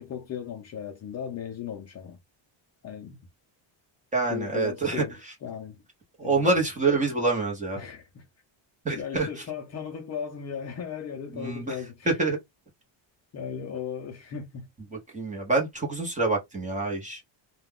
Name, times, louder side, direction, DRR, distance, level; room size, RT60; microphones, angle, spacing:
voice 1, 0.0-2.2 2.8-3.2 4.3-5.1 5.4-5.8 6.2-6.5 7.8-8.2 9.0-12.1 13.3-14.7, left 8 dB, 35° left, 0.5 m, -36 dB
voice 2, 4.1-5.3 6.2-7.8 8.8-9.4 11.3-11.8 12.1-12.4 14.9-17.2, right 3 dB, 15° right, 0.8 m, -26 dB
2.3 x 2.2 x 3.5 m
cardioid pair, 165°, 46 cm